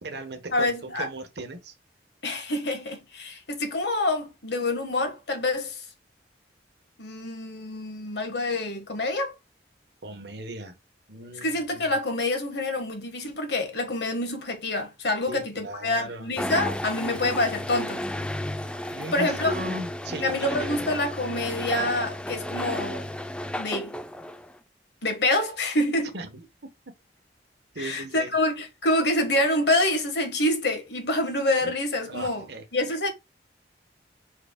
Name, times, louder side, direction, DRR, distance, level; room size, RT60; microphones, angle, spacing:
voice 1, 0.0-1.7 10.0-10.8 11.1-12.0 15.3-16.6 18.7-21.1 26.1-26.5 27.7-28.4 31.6-31.7 32.1-32.6, right 1 dB, 65° right, 1.1 m, -37 dB
voice 2, 0.5-1.1 2.2-5.8 7.0-9.3 11.4-18.0 19.1-19.5 20.2-23.1 23.6-24.0 25.0-26.1 27.8-32.4 32.7-33.1, left 1 dB, 65° left, 1.4 m, -27 dB
sound 1, 16.4-24.6, left 1 dB, 5° left, 0.3 m, -33 dB
4.8 x 4.7 x 2.2 m
head